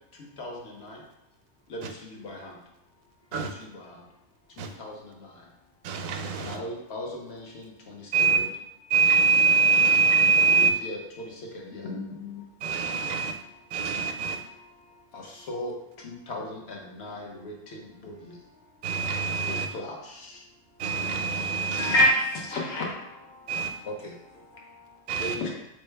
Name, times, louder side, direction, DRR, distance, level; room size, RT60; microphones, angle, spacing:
voice 1, 0.1-1.0 1.7-2.6 3.3-4.0 4.6-5.4 6.4-8.5 10.5-11.9 12.7-18.4 19.0-19.1 19.4-20.4 21.7-21.9 22.8-23.0 23.3-25.5, left 1 dB, 55° left, -1 dB, 1.0 m, -41 dB
voice 2, 5.8-6.6 8.1-8.4 8.9-10.8 12.6-13.4 13.7-14.4 18.8-19.7 20.8-22.0 23.5-23.7 25.1-25.4, right 5 dB, 90° right, 5 dB, 1.0 m, -24 dB
voice 3, 11.8-12.4 21.8-22.8 25.4-25.5, left 1 dB, 75° left, -2 dB, 1.4 m, -25 dB
4.4 x 3.3 x 3.3 m, 0.86 s
omnidirectional pair, 1.4 m